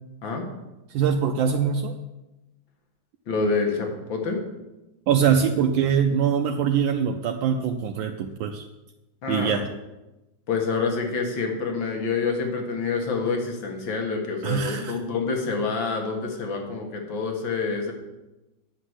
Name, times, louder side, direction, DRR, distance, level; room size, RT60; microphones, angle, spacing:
voice 1, 0.9-2.0 5.1-8.7 9.3-9.7 14.4-15.0, right 7 dB, 80° right, 5 dB, 1.4 m, -23 dB
voice 2, 3.3-4.4 9.2-9.6 10.5-17.9, left 4 dB, 75° left, 2 dB, 2.3 m, -27 dB
10.0 x 5.9 x 8.0 m, 1.0 s
omnidirectional pair, 2.1 m